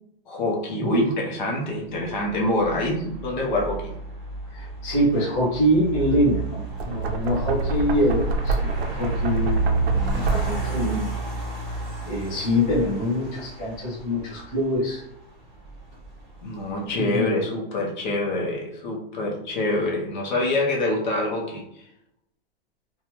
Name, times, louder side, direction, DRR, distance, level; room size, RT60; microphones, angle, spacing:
voice 1, 0.3-3.9 16.4-21.8, left 1 dB, 50° left, -1 dB, 0.8 m, -26 dB
sound 1, 2.1-16.9, right 3 dB, 5° right, 0.9 m, -31 dB
voice 2, 4.5-11.1 12.0-15.0 16.9-17.3, equal, 15° left, -10 dB, 0.5 m, -24 dB
Knock, 6.6-10.8, right 2 dB, 90° right, 0.6 m, -27 dB
2.7 x 2.3 x 2.9 m, 0.79 s
supercardioid pair, 180°, 30 cm